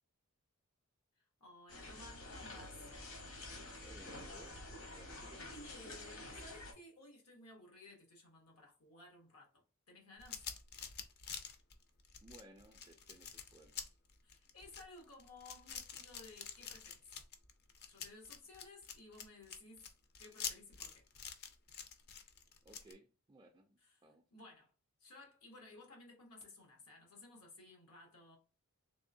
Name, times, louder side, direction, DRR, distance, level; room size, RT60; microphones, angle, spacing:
voice 1, 1.2-2.9 5.4-10.4 14.2-17.1 17.8-19.9 20.2-21.1 23.8-24.0 24.3-24.7 25.0-28.4, left 2 dB, 85° left, 1.0 m, -57 dB
sound 1, 1.7-6.7, left 2 dB, 65° left, 1.1 m, -49 dB
voice 2, 3.8-5.5 12.2-14.0 22.6-24.2, right 2 dB, 20° right, 0.3 m, -60 dB
sound 2, 10.2-22.9, left 7 dB, 45° left, 0.5 m, -47 dB
3.5 x 3.2 x 2.6 m
head